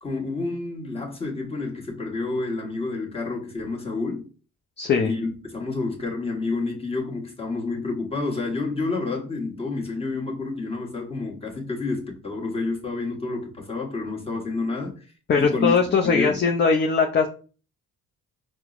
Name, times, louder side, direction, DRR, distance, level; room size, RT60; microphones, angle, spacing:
voice 1, 0.0-4.3 5.0-14.9 15.4-16.4, left 3 dB, 15° left, 1.1 m, -29 dB
voice 2, 4.8-5.1 15.3-17.3, left 5 dB, 30° left, 0.4 m, -20 dB
4.3 x 2.0 x 2.4 m
cardioid pair, 85°, 37 cm